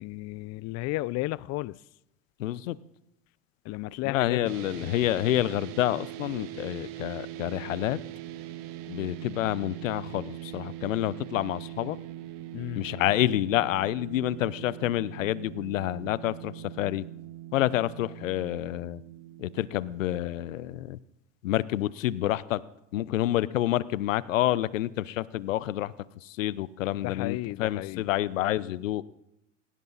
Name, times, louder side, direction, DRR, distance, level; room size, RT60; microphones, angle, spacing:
voice 1, 0.0-1.8 3.6-4.9 12.5-12.8 27.0-28.0, left 19 dB, 45° left, 0.6 m, -34 dB
voice 2, 2.4-2.8 4.0-8.0 8.9-12.0 12.7-17.0 17.5-19.0 19.4-21.0 21.4-22.6 22.9-25.9 26.2-29.0, left 14 dB, 85° left, 0.8 m, -28 dB
sound 1, 4.4-20.8, right 14 dB, 55° right, 1.8 m, -42 dB
18.5 x 18.0 x 4.1 m
hypercardioid pair, 100°, 38 cm